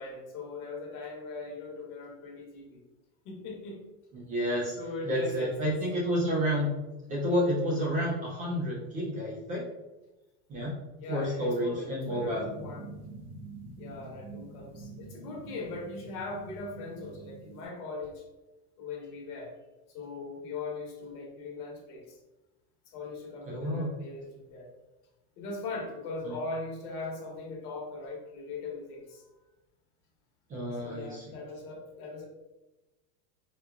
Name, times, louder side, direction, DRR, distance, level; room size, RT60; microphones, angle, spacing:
voice 1, 0.0-2.8 3.2-3.8 4.8-5.8 11.0-12.8 13.8-18.2 18.8-19.5 19.9-22.2 22.9-24.7 25.4-29.2 30.8-32.3, left 3 dB, 70° left, 0 dB, 1.2 m, -40 dB
voice 2, 4.1-4.7 5.0-6.7 7.1-9.6 10.5-10.7 11.1-12.4 23.5-23.9 26.2-26.4 30.5-31.2, equal, 20° right, -5 dB, 0.3 m, -30 dB
sound 1, 12.0-17.6, right 2 dB, 5° right, 0.8 m, -46 dB
4.4 x 2.3 x 2.3 m, 1.1 s
supercardioid pair, 135°, 46 cm